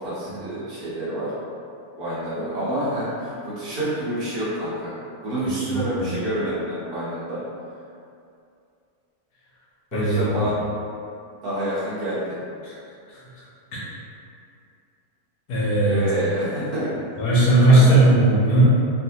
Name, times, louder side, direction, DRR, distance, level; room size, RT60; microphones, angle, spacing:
voice 1, 0.0-1.3 2.0-4.9 5.2-7.4 9.9-10.5 11.4-12.4 15.8-16.9 17.3-18.0, right 1 dB, 65° right, -10 dB, 1.5 m, -28 dB
voice 2, 5.4-6.2 9.9-10.2 12.6-12.7 13.1-13.4 13.7-13.8 15.5-16.1 17.2-18.7, right 1 dB, 70° left, -7 dB, 1.1 m, -18 dB
3.2 x 2.6 x 2.8 m, 2.5 s
omnidirectional pair, 1.8 m